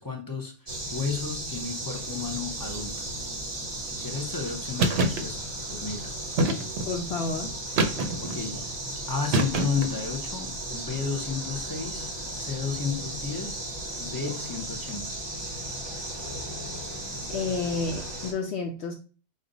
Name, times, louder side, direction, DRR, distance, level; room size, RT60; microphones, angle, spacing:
voice 1, 0.0-3.1 3.8-5.4 5.7-6.2 8.2-8.7 9.1-13.6 14.0-15.0, left 5 dB, 25° left, 2 dB, 0.5 m, -33 dB
sound 1, 0.7-18.3, right 1 dB, 25° right, 0.7 m, -35 dB
sound 2, 4.8-5.2 6.4-6.9 7.8-8.4 9.3-10.0, right 2 dB, 60° right, 0.8 m, -25 dB
voice 2, 6.9-7.5 17.3-18.9, left 4 dB, 65° left, 3 dB, 0.8 m, -30 dB
5.4 x 2.2 x 3.9 m, 0.36 s
omnidirectional pair, 1.4 m